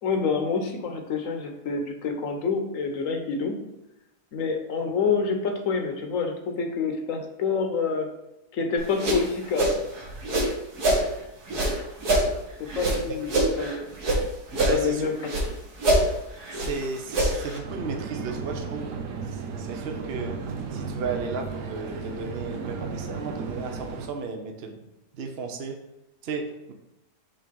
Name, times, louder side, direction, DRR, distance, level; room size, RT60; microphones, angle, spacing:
voice 1, 0.0-3.6 4.3-8.1 8.5-9.7 12.6-13.9 14.7-15.1, left 5 dB, 60° left, 4 dB, 1.2 m, -27 dB
sound 1, 8.8-11.1 11.5-14.2 14.5-15.5 15.8-17.6, right 1 dB, 70° right, 1.9 m, -25 dB
voice 2, 14.5-15.1 16.5-18.9 19.3-20.4 20.7-24.9 25.1-25.8 26.2-26.7, right 4 dB, 55° right, 4 dB, 0.7 m, -34 dB
sound 2, 17.6-24.1, right 5 dB, 90° right, 1.3 m, -34 dB
5.7 x 3.3 x 5.2 m, 0.92 s
omnidirectional pair, 1.7 m